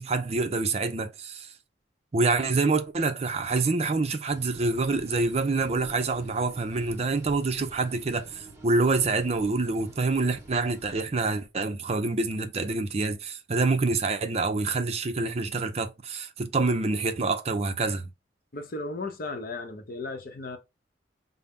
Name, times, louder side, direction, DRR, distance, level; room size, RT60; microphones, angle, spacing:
voice 1, 0.0-1.5 2.1-18.1, right 3 dB, 35° right, 0.5 m, -26 dB
sound 1, 4.3-11.0, right 1 dB, 15° right, 0.9 m, -49 dB
voice 2, 18.5-20.6, left 2 dB, 50° left, 0.7 m, -35 dB
5.5 x 2.0 x 3.5 m
head